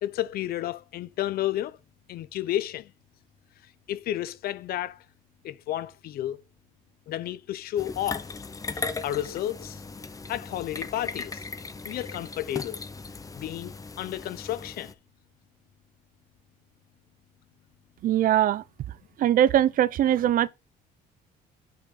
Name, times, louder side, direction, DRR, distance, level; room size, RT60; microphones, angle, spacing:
voice 1, 0.0-1.8 2.1-2.9 3.9-5.0 5.4-6.4 7.1-8.2 8.7-9.8 10.3-11.4 11.8-12.8 13.3-14.9, left 13 dB, 65° left, 0.6 m, -31 dB
sound 1, 7.8-14.9, left 4 dB, 20° left, 0.7 m, -37 dB
voice 2, 18.0-18.6 19.2-20.5, right 11 dB, 55° right, 0.5 m, -21 dB
6.3 x 5.7 x 5.1 m
cardioid pair, 110°, 17 cm